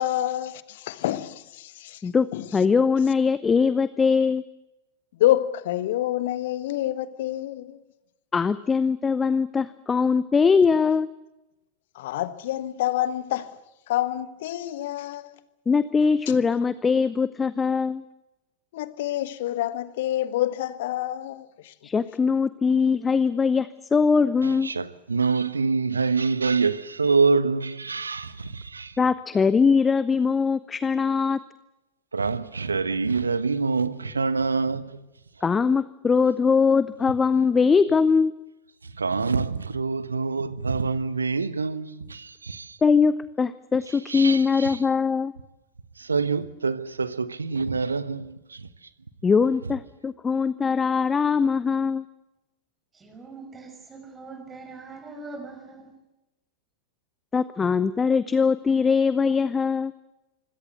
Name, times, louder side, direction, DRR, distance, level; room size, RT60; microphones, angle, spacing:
voice 1, 0.0-2.0 2.3-2.4 5.2-7.8 11.9-13.5 13.9-15.3 18.7-21.7, left 13 dB, 55° left, 1.2 m, -27 dB
voice 2, 2.5-4.4 8.3-11.1 15.7-18.0 21.8-24.7 29.0-31.4 35.4-38.3 42.8-45.3 49.2-52.0 57.3-59.9, left 5 dB, 15° left, 0.7 m, -21 dB
voice 3, 24.4-29.0 32.1-35.1 38.8-42.8 43.9-44.8 46.0-48.7, right 4 dB, 75° right, 1.2 m, -26 dB
voice 4, 52.9-55.9, right 3 dB, 20° right, 5.8 m, -42 dB
25.5 x 17.0 x 7.9 m
figure-of-eight pair, 90°, 0 cm